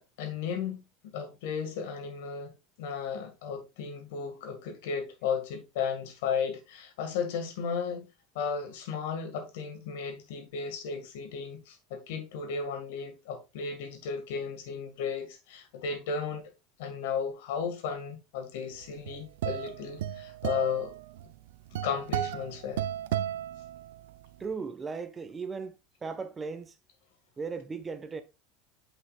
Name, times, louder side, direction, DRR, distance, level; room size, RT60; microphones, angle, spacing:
voice 1, 0.0-2.5 2.8-8.1 8.4-16.4 16.8-20.9 21.8-22.8, left 6 dB, 75° left, 1.8 m, -34 dB
sound 1, 18.8-24.3, right 12 dB, 80° right, 0.5 m, -34 dB
voice 2, 24.4-25.8 26.0-26.7 27.4-28.2, right 5 dB, 25° right, 1.1 m, -37 dB
8.1 x 5.8 x 2.4 m
hypercardioid pair, 90°, 0 cm